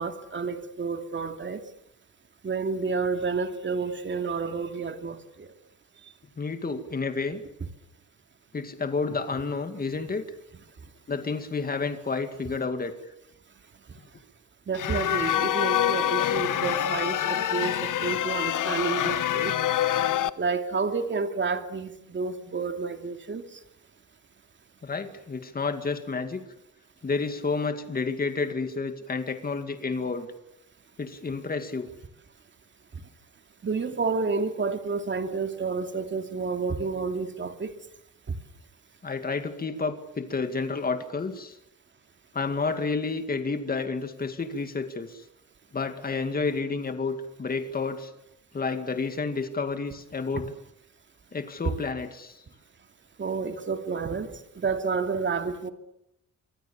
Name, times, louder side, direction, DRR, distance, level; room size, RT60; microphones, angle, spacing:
voice 1, 0.0-1.6 2.4-5.5 14.7-19.6 20.4-23.4 33.6-37.8 50.3-50.4 53.2-55.7, right 4 dB, 40° right, 7 dB, 2.6 m, -30 dB
voice 2, 6.4-7.4 8.5-10.2 11.1-12.9 24.8-26.4 27.0-30.3 31.0-31.9 39.0-41.6 42.3-45.2 45.7-48.1 48.5-50.5 51.3-52.4, left 4 dB, 30° left, 8 dB, 2.1 m, -30 dB
sound 1, 14.7-20.3, left 11 dB, 85° left, 1.1 m, -26 dB
27.0 x 24.0 x 7.2 m, 0.82 s
wide cardioid pair, 165°, 31 cm